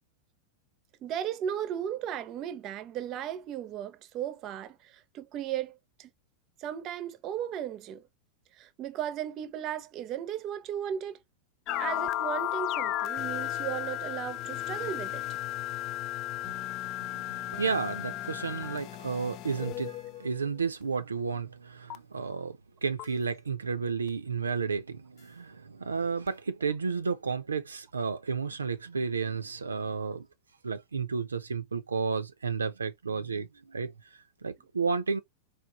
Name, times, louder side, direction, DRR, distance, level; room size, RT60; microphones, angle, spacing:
voice 1, 1.0-6.1 6.6-8.0 8.5-11.2 11.8-15.2, right 10 dB, 35° right, 0.7 m, -36 dB
sound 1, 11.7-20.5 21.9-22.0 23.0-23.1 24.1-24.2 26.3-26.4, left 14 dB, 35° left, 0.3 m, -34 dB
voice 2, 17.0-30.3 30.6-35.2, right 5 dB, 75° right, 0.6 m, -32 dB
4.8 x 2.5 x 3.8 m
figure-of-eight pair, 90°, 0 cm